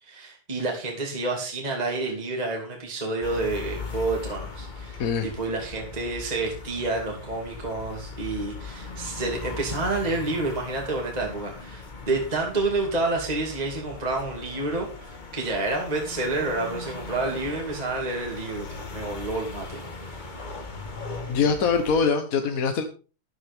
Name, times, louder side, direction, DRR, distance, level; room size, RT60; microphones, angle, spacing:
voice 1, 0.0-20.4, right 2 dB, 20° right, 0 dB, 2.3 m, -29 dB
sound 1, 3.2-22.0, left 3 dB, 25° left, 1.2 m, -39 dB
voice 2, 21.3-22.8, left 5 dB, 50° left, 6 dB, 1.2 m, -23 dB
13.0 x 11.0 x 3.5 m, 0.35 s
omnidirectional pair, 2.4 m